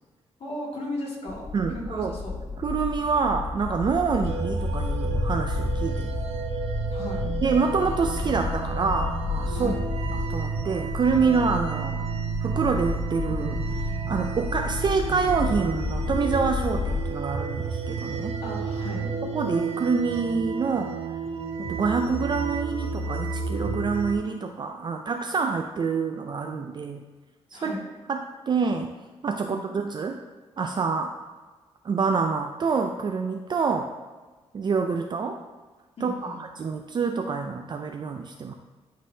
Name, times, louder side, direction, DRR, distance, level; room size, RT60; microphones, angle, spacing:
voice 1, 0.4-1.5 1.7-2.4 4.1-4.3 6.9-7.3 9.5-9.9 18.4-19.1 27.5-27.8 29.4-29.7 36.0-36.4, left 1 dB, 55° left, -4 dB, 2.1 m, -35 dB
sound 1, 1.3-17.0, left 4 dB, 35° left, 0.6 m, -32 dB
voice 2, 1.5-2.1 2.6-6.2 7.4-9.7 10.3-12.1 12.4-18.4 19.3-20.9 21.6-27.0 27.5-27.8 28.1-28.9 29.2-30.2 30.6-31.1 31.8-33.9 34.5-35.4 36.0-38.5, right 5 dB, 40° right, 4 dB, 0.4 m, -27 dB
sound 2, 4.2-24.1, right 5 dB, 70° right, 0.8 m, -31 dB
11.0 x 3.8 x 2.7 m, 1.3 s
cardioid pair, 100°, 12 cm